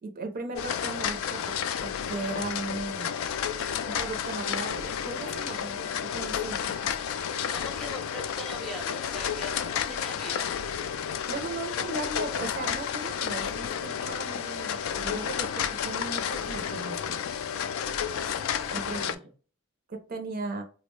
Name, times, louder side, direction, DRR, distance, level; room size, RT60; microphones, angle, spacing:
voice 1, 0.0-1.4 2.1-3.1 3.9-6.8 9.8-9.9 11.3-17.2 18.7-19.2 19.9-20.6, right 3 dB, 45° right, 5 dB, 0.5 m, -37 dB
sound 1, 0.6-19.2, left 8 dB, 70° left, 0.3 m, -31 dB
voice 2, 7.5-10.5 18.3-19.3, equal, ahead, 2 dB, 0.6 m, -42 dB
3.7 x 2.1 x 3.0 m, 0.38 s
head